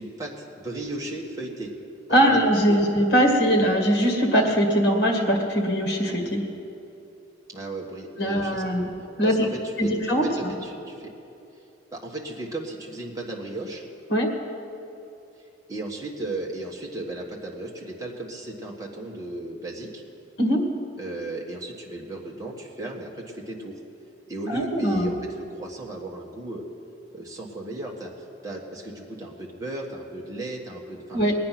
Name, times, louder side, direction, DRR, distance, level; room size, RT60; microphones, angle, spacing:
voice 1, 0.0-1.7 2.1-2.4 2.7-2.9 7.5-8.9 9.2-11.1 11.9-13.8 15.7-20.0 21.0-23.8 24.3-26.6 27.1-28.1 28.4-31.3, right 2 dB, 20° right, -2 dB, 1.5 m, -35 dB
voice 2, 2.1-6.4 8.2-8.9 9.2-9.5 9.8-10.5 14.1-14.3 20.4-20.7 24.5-25.1 31.1-31.3, equal, 60° left, 2 dB, 2.0 m, -21 dB
20.0 x 9.6 x 5.9 m, 2.7 s
head